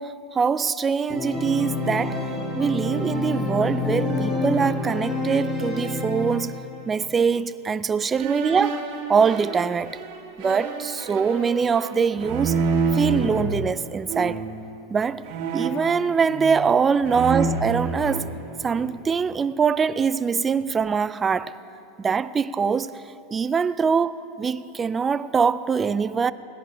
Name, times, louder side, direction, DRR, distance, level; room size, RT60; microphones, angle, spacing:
voice 1, 0.0-2.2 2.6-6.5 6.9-8.8 9.1-10.0 10.4-12.6 12.9-14.4 14.9-15.2 15.5-18.3 18.6-21.5 22.0-22.9 23.3-26.3, right 6 dB, 20° right, 0.4 m, -23 dB
Organ, 1.1-6.8, left 2 dB, 5° left, 2.1 m, -27 dB
sound 1, 8.2-13.4 14.1-14.6 15.2-16.7 17.0-19.0, right 4 dB, 55° right, 2.0 m, -28 dB
17.0 x 10.5 x 4.9 m
hypercardioid pair, 115°, 0 cm